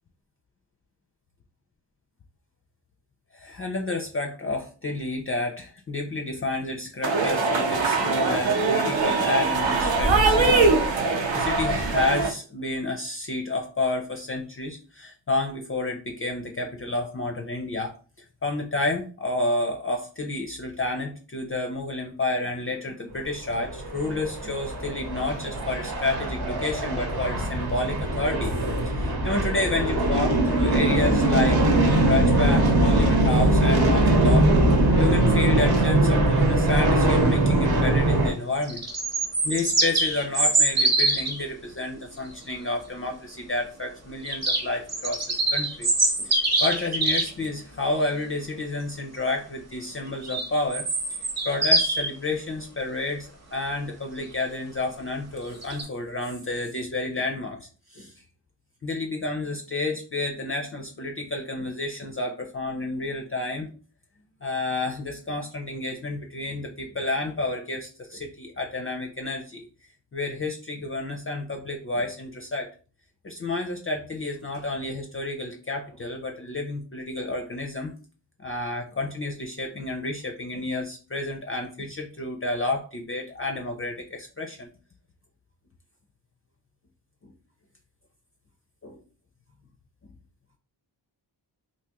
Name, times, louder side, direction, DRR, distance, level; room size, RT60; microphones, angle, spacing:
voice 1, 3.3-17.9 18.4-31.6 31.9-34.5 34.9-38.8 39.4-45.9 46.2-46.3 46.6-50.9 51.2-58.1 58.8-63.7 64.4-69.6 70.1-72.7 73.2-77.9 78.4-84.7 87.2-87.3 88.8-89.0, left 2 dB, 30° left, 2 dB, 0.4 m, -30 dB
sound 1, 7.0-12.3, right 3 dB, 75° right, 0.8 m, -22 dB
sound 2, 23.5-38.3, right 1 dB, 55° right, 0.9 m, -21 dB
sound 3, 38.5-41.4 44.3-47.3 50.2-52.1 55.6-55.8, right 2 dB, 35° right, 0.8 m, -24 dB
3.5 x 2.6 x 2.8 m, 0.37 s
wide cardioid pair, 150°, 45 cm